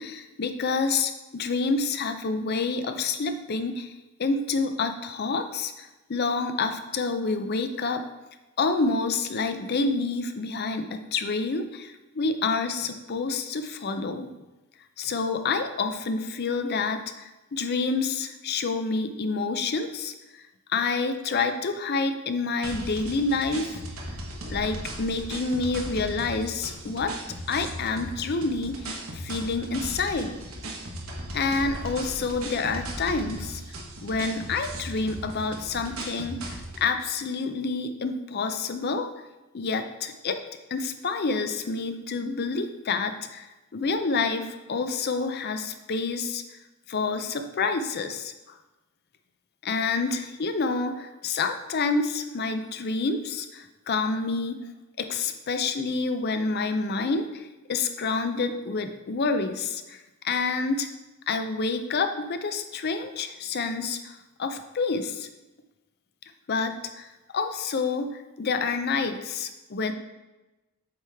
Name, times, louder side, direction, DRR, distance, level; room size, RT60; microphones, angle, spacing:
voice 1, 0.0-3.9 4.2-8.0 8.6-14.4 15.0-20.1 20.7-23.8 24.5-27.2 27.5-30.3 31.3-33.6 34.0-39.1 39.5-40.4 40.7-43.5 43.7-46.4 46.9-48.3 49.6-54.6 55.0-60.9 61.3-65.3 66.5-69.9, left 4 dB, 50° left, 8 dB, 0.5 m, -28 dB
sound 1, 22.6-36.9, right 1 dB, 70° right, 1.1 m, -37 dB
7.8 x 4.7 x 3.5 m, 1.1 s
head